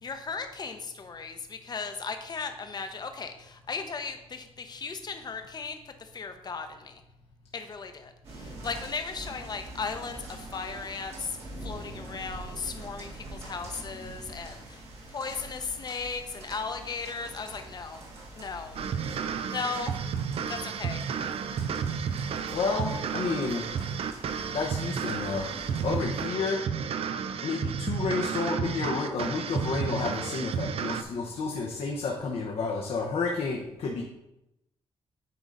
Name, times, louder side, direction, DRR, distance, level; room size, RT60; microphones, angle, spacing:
voice 1, 0.0-7.0 7.5-14.8 15.1-18.0 18.4-18.8 19.5-20.0 20.5-21.0, left 4 dB, 40° left, 7 dB, 0.7 m, -36 dB
sound 1, 8.2-26.0, right 2 dB, 85° right, 2.1 m, -45 dB
sound 2, 18.8-31.0, right 7 dB, 70° right, 0.5 m, -32 dB
voice 2, 22.5-23.7 24.5-25.4 25.8-26.6 27.4-34.0, left 4 dB, 75° left, 0 dB, 0.9 m, -30 dB
9.6 x 3.9 x 3.9 m, 0.89 s
cardioid pair, 110°, 10 cm